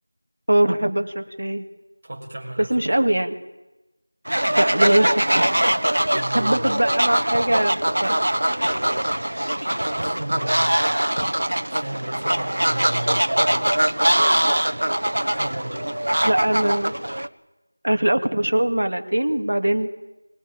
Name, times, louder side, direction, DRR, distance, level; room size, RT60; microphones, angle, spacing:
voice 1, 0.5-1.6 2.6-3.4 4.6-6.0 6.3-8.2 16.2-16.9 17.8-19.9, right 1 dB, 65° right, 6 dB, 2.6 m, -22 dB
voice 2, 2.0-2.7 6.1-6.6 9.8-10.7 11.7-13.8 15.3-16.0, right 1 dB, 25° right, -3 dB, 6.4 m, -33 dB
Fowl, 4.3-17.3, right 1 dB, 85° right, 1.3 m, -22 dB
24.0 x 21.5 x 9.0 m, 1.0 s
figure-of-eight pair, 180°, 0 cm